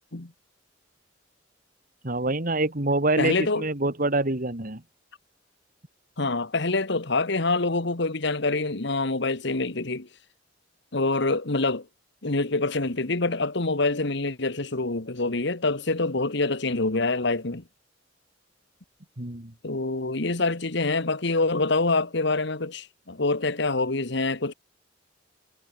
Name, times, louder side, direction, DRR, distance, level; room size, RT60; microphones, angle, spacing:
voice 1, 2.0-4.8 19.2-19.5, right 2 dB, 45° right, 2.5 m, -26 dB
voice 2, 3.2-3.7 6.2-10.1 10.9-11.8 12.2-17.6 19.6-24.5, left 3 dB, 65° left, 1.7 m, -26 dB
head